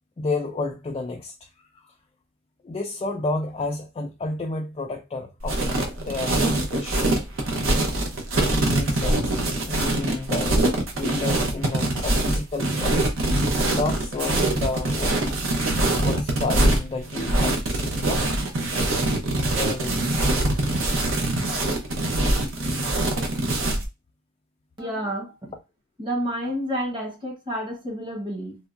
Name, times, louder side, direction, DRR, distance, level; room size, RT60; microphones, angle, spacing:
voice 1, 0.2-1.3 1.7-1.9 2.6-5.6 5.9-7.2 8.5-9.3 9.7-10.6 10.9-13.0 13.7-15.3 16.0-18.4 19.6-20.2 22.6-22.8, left 2 dB, 25° left, 0.3 m, -31 dB
sound 1, 5.4-23.9, right 1 dB, 75° right, 0.8 m, -23 dB
voice 2, 24.8-25.5 26.0-28.6, equal, 25° right, 0.9 m, -30 dB
3.4 x 2.2 x 2.4 m
head